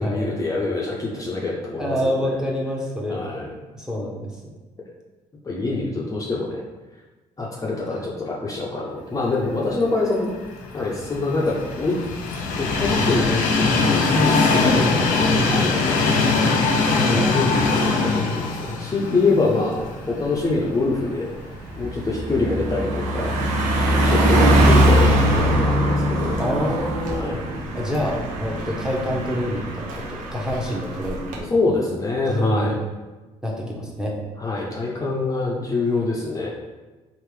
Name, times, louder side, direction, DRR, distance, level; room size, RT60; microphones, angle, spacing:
voice 1, 0.0-2.4 3.1-3.5 5.4-6.6 7.4-10.3 10.7-12.0 12.6-16.0 16.8-21.3 21.8-23.4 24.0-26.4 27.1-27.4 31.5-32.8 34.4-36.5, left 3 dB, 25° left, -3 dB, 0.6 m, -25 dB
voice 2, 1.8-3.2 3.7-4.3 7.9-8.1 16.9-17.3 19.0-19.6 26.4-27.4 27.7-31.5 32.3-32.7 33.4-34.2, equal, 5° right, -2 dB, 0.9 m, -27 dB
Train, 10.4-20.6 21.0-21.1 22.2-22.3, left 3 dB, 80° left, 0.6 m, -21 dB
Car passing by, 19.8-20.0 20.4-31.4, right 1 dB, 75° right, 0.7 m, -21 dB
3.4 x 2.5 x 3.3 m, 1.2 s
supercardioid pair, 75°, 14 cm